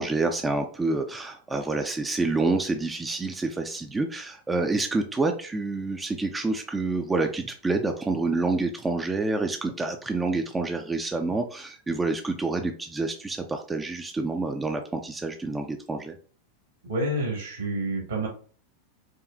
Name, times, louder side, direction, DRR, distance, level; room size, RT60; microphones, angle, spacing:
voice 1, 0.0-16.2, right 3 dB, 15° right, 5 dB, 0.4 m, -28 dB
voice 2, 16.9-18.3, right 1 dB, 70° right, -1 dB, 1.8 m, -28 dB
4.9 x 2.3 x 2.6 m, 0.43 s
figure-of-eight pair, 90°, 0 cm